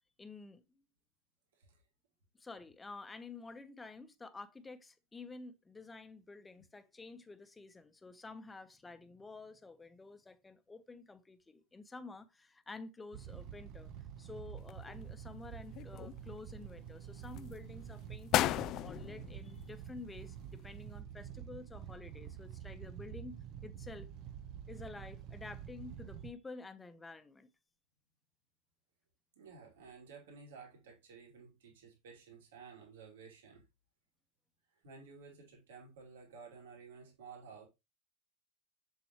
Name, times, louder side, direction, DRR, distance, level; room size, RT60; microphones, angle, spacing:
voice 1, 0.2-0.6 2.4-13.9 14.2-18.5 18.8-23.4 23.6-24.1 24.7-27.5, left 3 dB, 15° left, 1.1 m, -50 dB
sound 1, 13.1-26.3, right 10 dB, 50° right, 1.1 m, -48 dB
sound 2, 14.6-15.3 15.7-16.6 17.2-17.5 18.0-18.1 18.3-20.2 20.5-20.6, left 14 dB, 45° left, 0.4 m, -35 dB
voice 2, 29.3-33.6 34.7-37.7, right 5 dB, 75° right, 3.2 m, -54 dB
7.0 x 7.0 x 3.1 m
hypercardioid pair, 90°, 0 cm